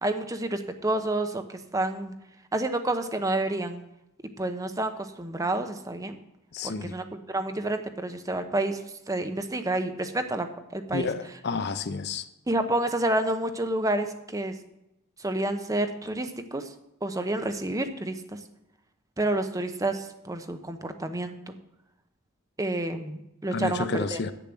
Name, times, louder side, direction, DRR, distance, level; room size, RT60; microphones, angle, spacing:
voice 1, 0.0-2.1 2.5-3.8 4.4-6.2 6.6-8.8 9.1-11.1 12.5-14.5 15.2-16.7 17.0-18.2 19.2-21.5 22.6-24.2, right 2 dB, 15° right, 0.7 m, -29 dB
voice 2, 6.5-7.0 10.9-12.2 23.5-24.3, left 4 dB, 50° left, 0.6 m, -30 dB
9.2 x 6.9 x 7.6 m
head